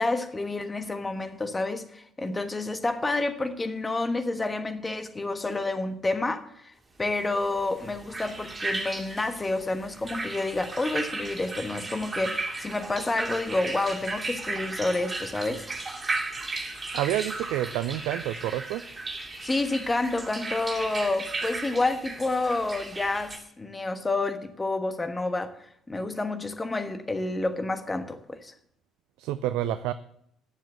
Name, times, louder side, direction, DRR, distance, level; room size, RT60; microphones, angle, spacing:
voice 1, 0.0-6.7 7.0-15.7 19.4-25.6 25.9-28.5, left 2 dB, 20° left, 1.3 m, -29 dB
sound 1, 7.4-23.4, right 3 dB, 25° right, 2.6 m, -35 dB
voice 2, 16.9-18.8 29.2-29.9, right 13 dB, 65° right, 0.4 m, -28 dB
10.0 x 7.4 x 7.8 m
figure-of-eight pair, 50°, 0 cm